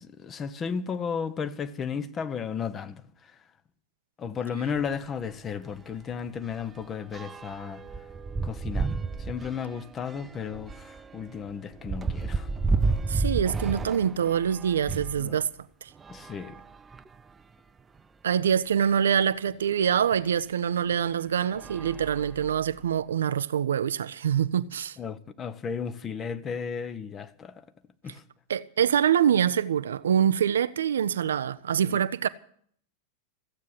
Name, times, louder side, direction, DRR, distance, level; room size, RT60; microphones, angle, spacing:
voice 1, 0.0-3.0 4.2-7.8 8.4-8.9 9.2-12.5 15.2-15.4 16.1-16.6 25.0-27.6 28.0-28.2 31.8-32.0, left 6 dB, 25° left, 0.9 m, -34 dB
sound 1, 4.8-4.9 5.3-5.5 5.8-15.2 16.0-17.3 18.0-18.1 18.3-18.4 20.1-20.2 20.9-21.2 21.5-22.8, right 4 dB, 15° right, 0.5 m, -32 dB
voice 2, 13.1-15.5 15.8-15.9 18.2-25.0 28.5-32.3, right 8 dB, 65° right, 0.5 m, -25 dB
15.0 x 8.4 x 9.1 m
figure-of-eight pair, 90°, 0 cm